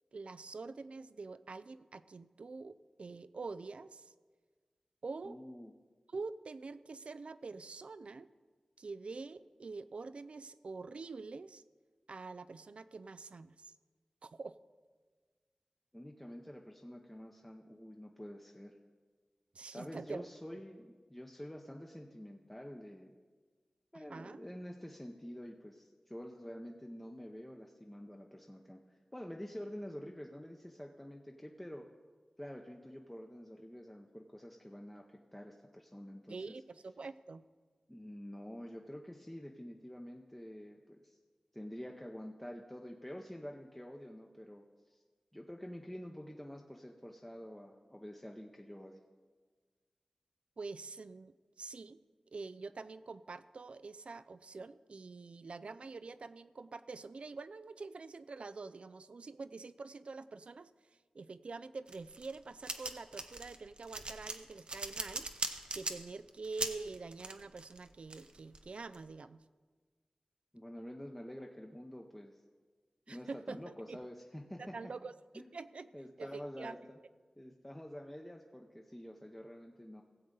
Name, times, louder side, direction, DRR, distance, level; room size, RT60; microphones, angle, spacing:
voice 1, 0.1-4.1 5.0-5.4 6.1-8.3 8.8-11.6 12.1-13.7 14.2-14.6 19.5-20.3 23.9-24.4 36.3-37.4 50.6-52.0 52.3-60.7 61.1-65.3 65.7-69.4 73.1-74.0 74.6-75.9 76.2-76.8, right 4 dB, 70° right, 14 dB, 0.4 m, -46 dB
voice 2, 5.2-5.7 15.9-18.7 19.7-23.1 23.9-28.8 29.1-31.9 32.4-36.5 37.9-41.2 41.5-44.6 44.9-45.0 45.3-49.0 70.5-72.3 73.1-74.8 75.3-75.5 75.9-77.0 77.4-80.0, equal, 10° left, 1 dB, 0.7 m, -48 dB
sound 1, 61.9-69.0, right 2 dB, 55° right, 0.8 m, -41 dB
17.0 x 7.7 x 3.8 m, 1.5 s
wide cardioid pair, 60°, 2 cm